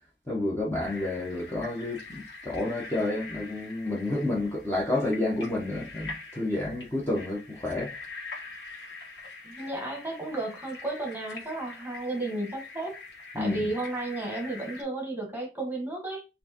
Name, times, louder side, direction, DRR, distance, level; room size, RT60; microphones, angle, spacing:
voice 1, 0.3-7.9 13.3-13.7, left 2 dB, 15° left, 0.9 m, -30 dB
sound 1, 0.8-14.8, left 3 dB, 75° left, 1.4 m, -44 dB
voice 2, 9.4-12.9 13.3-16.2, right 2 dB, 10° right, 1.2 m, -33 dB
4.3 x 2.7 x 2.8 m
head